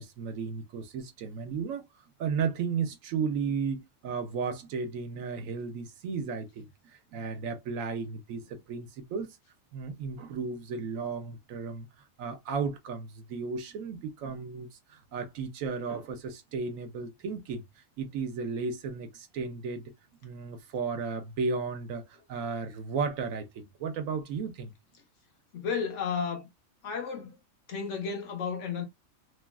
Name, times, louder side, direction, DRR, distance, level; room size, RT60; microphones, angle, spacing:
voice 1, 0.0-1.8 2.2-9.4 9.7-19.9 20.2-24.7, right 5 dB, 75° right, 1.0 m, -34 dB
voice 2, 25.5-26.5 26.8-27.4 27.7-28.9, left 6 dB, 65° left, 1.0 m, -33 dB
3.0 x 2.3 x 2.3 m
omnidirectional pair, 1.4 m